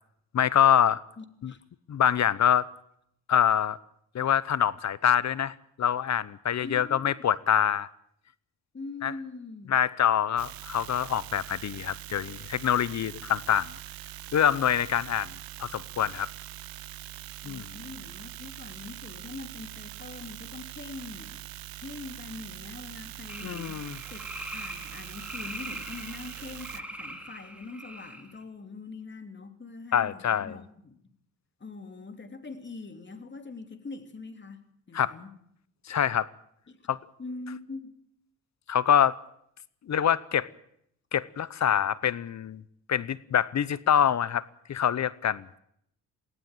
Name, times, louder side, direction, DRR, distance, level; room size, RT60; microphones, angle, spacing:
voice 1, 0.3-1.0 1.4-1.5 1.9-2.7 3.3-3.8 4.1-7.9 9.0-9.1 9.7-13.7 14.3-15.3 15.6-16.3 17.4-17.7 23.4-24.0 29.9-30.6 34.9-35.1 35.9-36.3 36.9-37.0 38.7-39.2 39.9-40.5 41.1-42.6 42.9-45.4, left 9 dB, 50° left, 19 dB, 0.8 m, -25 dB
voice 2, 1.2-1.6 6.6-7.2 8.7-9.7 17.4-21.4 21.7-23.8 24.1-24.2 24.5-31.0 31.6-35.3 36.7-36.8 37.2-37.9, left 3 dB, 30° left, 7 dB, 2.9 m, -43 dB
sound 1, 10.4-26.8, right 15 dB, 80° right, 0.8 m, -43 dB
sound 2, 23.3-28.4, right 1 dB, 5° right, 3.7 m, -41 dB
19.0 x 17.5 x 9.1 m, 0.72 s
cardioid pair, 85°, 36 cm